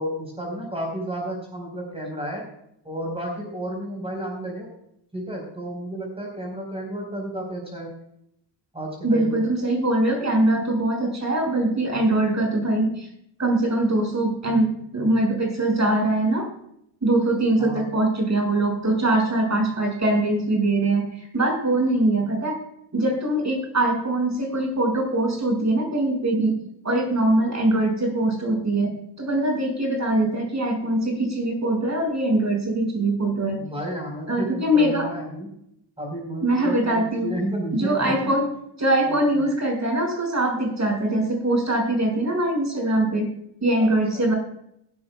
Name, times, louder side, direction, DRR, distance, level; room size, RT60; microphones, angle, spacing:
voice 1, 0.0-2.4 2.8-4.7 5.1-7.9 8.7-9.4 17.6-17.9 33.5-35.5 36.0-38.3 39.0-39.4 43.8-43.9 44.1-44.2, right 1 dB, 15° right, 0 dB, 4.7 m, -32 dB
voice 2, 9.0-13.1 13.4-16.5 17.0-22.6 22.9-26.6 26.8-33.6 34.3-35.1 36.4-37.3 37.7-38.5 38.8-43.3 43.6-44.4, right 1 dB, 35° right, 2 dB, 6.2 m, -22 dB
18.0 x 13.0 x 2.4 m, 0.74 s
cardioid pair, 105°, 44 cm